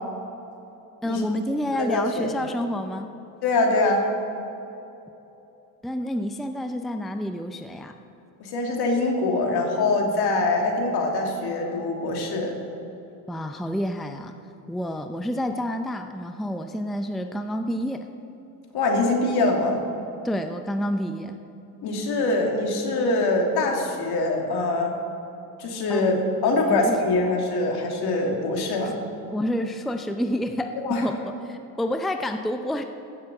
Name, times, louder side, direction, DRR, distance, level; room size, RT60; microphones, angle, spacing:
voice 1, 1.0-3.1 5.8-7.9 13.3-14.3 14.7-18.1 20.2-21.4 25.9-26.2 26.7-27.1 29.3-31.2 31.4-32.8, left 1 dB, ahead, 7 dB, 0.6 m, -28 dB
voice 2, 1.7-2.3 3.4-4.1 8.4-12.5 18.7-19.8 21.8-24.9 25.6-26.1 26.4-29.0 30.8-31.0, left 2 dB, 60° left, 1 dB, 2.9 m, -23 dB
15.5 x 6.8 x 7.1 m, 2.9 s
hypercardioid pair, 75°, 44 cm